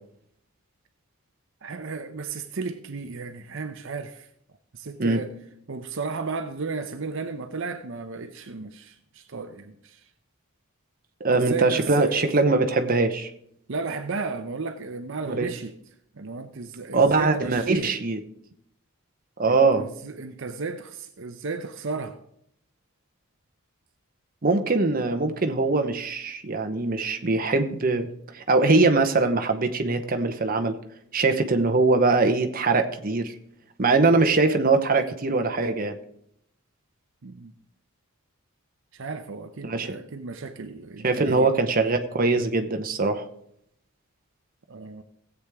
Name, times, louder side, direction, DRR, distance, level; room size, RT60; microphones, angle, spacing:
voice 1, 1.6-4.3 4.7-5.4 5.7-10.1 11.3-12.2 13.7-15.7 16.1-17.9 19.5-22.2 37.2-37.5 38.9-41.5 44.7-45.0, right 4 dB, 60° right, 7 dB, 0.7 m, -34 dB
voice 2, 11.2-13.3 15.3-15.5 16.9-18.2 19.4-19.9 24.4-28.1 28.3-30.8 31.1-33.3 33.8-36.0 39.6-39.9 41.0-43.3, right 3 dB, 40° right, 6 dB, 0.9 m, -22 dB
16.5 x 8.2 x 3.5 m, 0.72 s
head